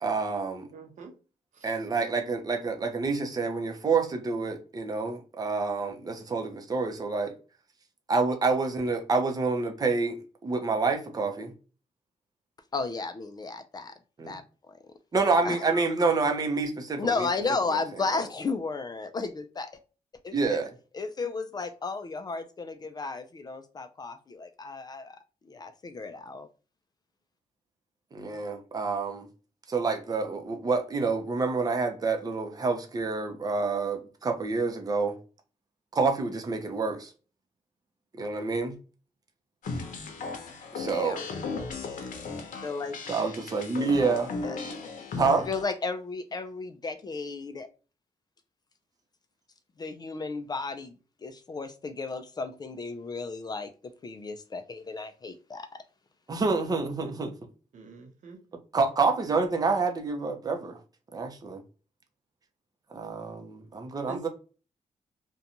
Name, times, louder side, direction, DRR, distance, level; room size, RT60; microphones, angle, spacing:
voice 1, 0.0-0.7 1.6-7.3 8.1-10.2 10.4-11.5 14.2-14.4 15.1-17.3 17.7-17.8 20.3-20.7 28.1-29.3 29.7-35.2 35.9-37.1 38.2-38.8 40.7-41.2 43.1-44.3 45.2-45.5 56.3-57.3 58.7-60.8 61.1-61.6 62.9-64.3, right 4 dB, 30° right, 0.6 m, -28 dB
voice 2, 0.7-1.1 57.0-57.1 57.7-58.4 64.1-64.3, right 4 dB, 70° right, 0.7 m, -44 dB
voice 3, 12.7-13.9 14.3-14.4 14.7-14.8 15.4-15.9 17.0-19.7 20.2-20.6 20.9-25.2 25.5-26.5 40.9-41.2 42.6-43.0 44.4-44.6 45.5-47.7 49.8-50.9 51.2-53.7 54.0-55.8, left 4 dB, 30° left, 0.3 m, -34 dB
sound 1, 39.6-45.6, left 4 dB, 80° left, 0.6 m, -36 dB
2.6 x 2.2 x 2.8 m
cardioid pair, 115°, 13 cm